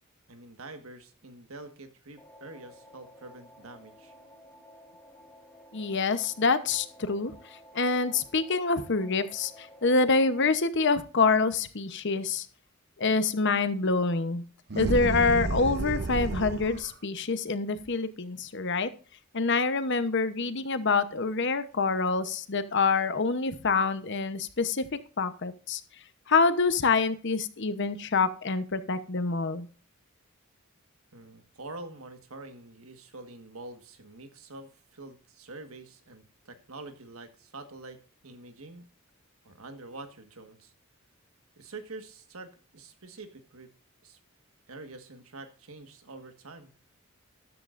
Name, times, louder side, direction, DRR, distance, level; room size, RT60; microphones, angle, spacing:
voice 1, 0.3-4.1 31.1-38.0 38.2-38.9 39.4-40.7 41.6-43.7 44.0-44.2 44.7-46.7, right 2 dB, 75° right, 7 dB, 1.6 m, -46 dB
sound 1, 2.2-10.6, equal, 5° left, 2.5 m, -53 dB
voice 2, 5.7-12.5 13.0-14.4 14.8-18.9 19.3-24.8 25.2-25.8 26.3-29.7, left 4 dB, 55° left, 11 dB, 0.9 m, -26 dB
sound 2, 14.7-16.9, right 2 dB, 50° right, 0.6 m, -31 dB
13.5 x 11.0 x 2.6 m, 0.39 s
head